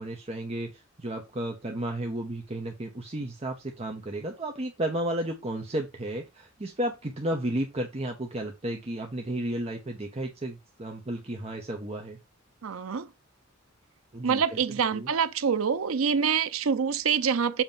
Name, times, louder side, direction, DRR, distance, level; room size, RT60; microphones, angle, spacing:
voice 1, 0.0-12.2 14.1-14.6 14.9-15.1, right 1 dB, 30° right, 0.9 m, -33 dB
voice 2, 12.6-13.1 14.2-17.6, right 6 dB, 85° right, 0.6 m, -26 dB
7.3 x 2.9 x 5.3 m
head